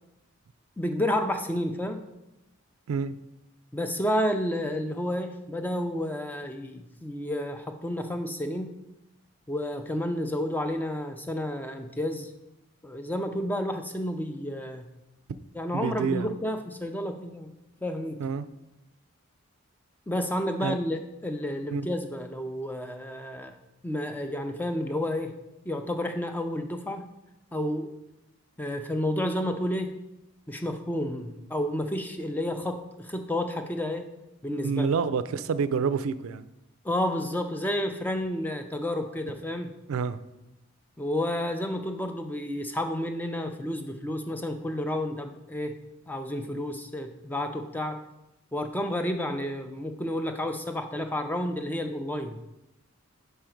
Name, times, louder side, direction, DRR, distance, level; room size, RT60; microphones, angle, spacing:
voice 1, 0.8-2.0 3.7-8.7 9.5-12.3 12.8-14.9 15.5-17.5 17.8-18.2 20.1-23.6 23.8-25.4 25.7-27.1 27.5-27.9 28.6-30.0 30.5-34.1 34.4-34.9 36.8-39.7 41.0-45.7 46.1-48.0 48.5-52.4, left 1 dB, 10° left, 6 dB, 0.4 m, -30 dB
voice 2, 15.7-16.3 18.2-18.5 20.6-20.8 21.7-21.9 34.5-36.4 39.9-40.2, right 5 dB, 85° right, 14 dB, 0.3 m, -28 dB
5.5 x 5.0 x 4.5 m, 0.92 s
head